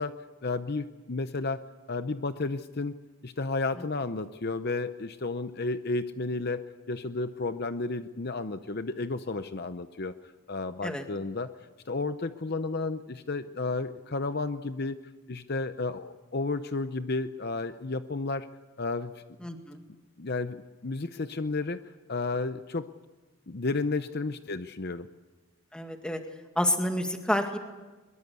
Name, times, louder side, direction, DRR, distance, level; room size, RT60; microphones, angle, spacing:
voice 1, 0.0-1.6 1.9-2.9 3.2-10.1 10.5-11.5 11.9-15.0 15.3-18.5 18.8-19.1 20.2-21.8 22.1-22.9 23.5-25.1, left 3 dB, 45° left, 10 dB, 0.7 m, -32 dB
voice 2, 19.4-19.8 25.7-26.2 26.6-27.6, left 1 dB, 5° left, 4 dB, 2.1 m, -29 dB
23.0 x 22.5 x 8.3 m, 1.2 s
head